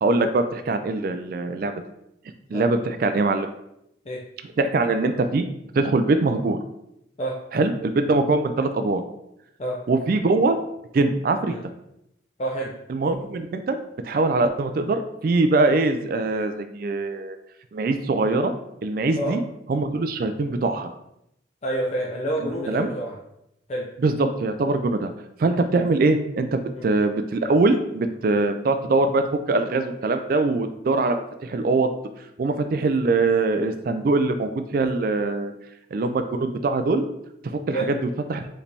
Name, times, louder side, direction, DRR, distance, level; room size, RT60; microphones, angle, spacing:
voice 1, 0.0-1.7 2.5-3.5 4.6-5.4 5.7-6.6 7.5-9.0 9.9-10.6 10.9-11.6 12.9-13.8 14.0-17.4 17.7-18.5 18.8-19.4 19.7-20.9 22.7-22.9 24.0-25.1 25.4-31.9 32.4-35.5 35.9-37.0 37.4-38.0 38.3-38.4, right 3 dB, 50° right, 8 dB, 0.3 m, -22 dB
voice 2, 12.4-12.7 19.2-19.4 21.6-23.2 23.7-23.9 26.8-26.9 37.7-38.0, right 1 dB, 35° left, -2 dB, 0.5 m, -28 dB
4.8 x 3.3 x 3.3 m, 0.80 s
head